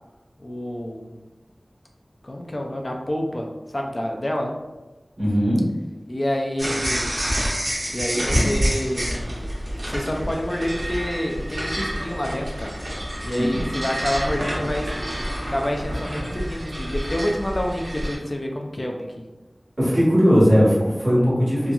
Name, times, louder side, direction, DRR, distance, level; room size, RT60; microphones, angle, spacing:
voice 1, 0.4-1.1 2.2-4.5 6.1-7.2 7.9-9.1 9.9-12.8 13.2-14.9 15.5-19.0, left 1 dB, 45° left, 1 dB, 0.3 m, -28 dB
voice 2, 5.2-5.6 13.5-13.7 19.8-21.7, equal, 45° right, -8 dB, 1.4 m, -18 dB
sound 1, 6.6-18.2, equal, 75° right, 0.8 m, -27 dB
2.8 x 2.3 x 2.3 m, 1.1 s
wide cardioid pair, 50°, 0 cm